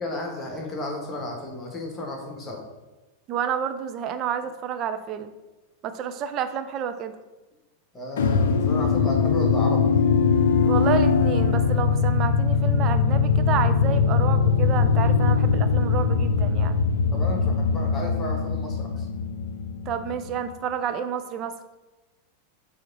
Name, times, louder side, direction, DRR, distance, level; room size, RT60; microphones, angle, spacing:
voice 1, 0.0-2.6 7.9-9.9 17.1-19.1, left 1 dB, 20° left, 1 dB, 1.6 m, -33 dB
voice 2, 3.3-5.3 5.8-7.2 10.6-16.8 19.9-21.6, right 8 dB, 35° right, 9 dB, 0.6 m, -29 dB
sound 1, 8.2-20.4, left 5 dB, 60° left, 0.6 m, -21 dB
7.4 x 3.5 x 5.4 m, 1.1 s
figure-of-eight pair, 90°, 0 cm